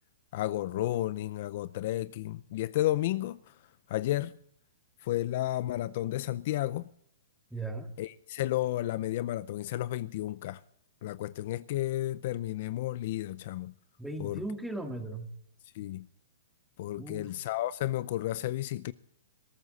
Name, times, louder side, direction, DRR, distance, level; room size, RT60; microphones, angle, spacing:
voice 1, 0.3-3.5 3.9-4.4 5.0-6.9 8.0-10.6 11.0-13.7 14.2-14.4 15.7-16.1 16.8-18.9, left 14 dB, 45° left, 0.5 m, -32 dB
voice 2, 7.5-7.9 14.0-15.3 17.0-17.3, right 2 dB, ahead, 1.9 m, -37 dB
20.5 x 13.5 x 4.1 m
hypercardioid pair, 155°, 0 cm